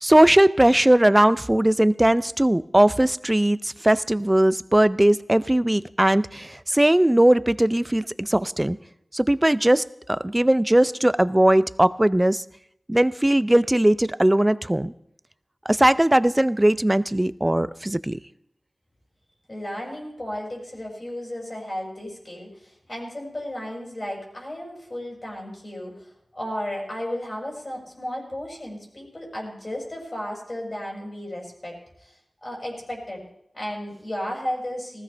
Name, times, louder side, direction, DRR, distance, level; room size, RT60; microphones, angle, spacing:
voice 1, 0.0-8.8 9.1-12.4 12.9-14.9 15.7-18.2, right 1 dB, 15° right, 16 dB, 0.5 m, -19 dB
voice 2, 19.5-32.1 32.4-33.3 33.5-35.0, left 1 dB, 40° left, -1 dB, 5.9 m, -34 dB
19.5 x 16.0 x 3.4 m, 0.76 s
wide cardioid pair, 75°, 0 cm